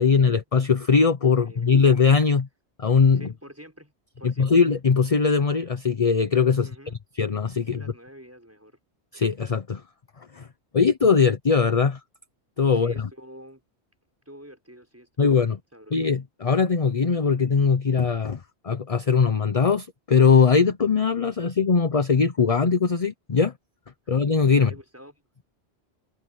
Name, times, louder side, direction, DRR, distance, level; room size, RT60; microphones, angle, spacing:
voice 1, 0.0-2.5 2.8-3.2 4.2-6.7 7.2-7.8 9.1-9.8 10.2-10.5 10.7-12.0 12.6-13.1 15.2-15.6 15.9-23.5 24.1-24.7, left 5 dB, 35° left, 0.8 m, -20 dB
voice 2, 1.4-1.7 3.1-4.5 6.6-7.0 7.6-8.8 12.7-13.6 14.2-15.4 15.7-15.9 24.6-25.2, equal, 10° right, 6.5 m, -47 dB
omnidirectional pair, 1.2 m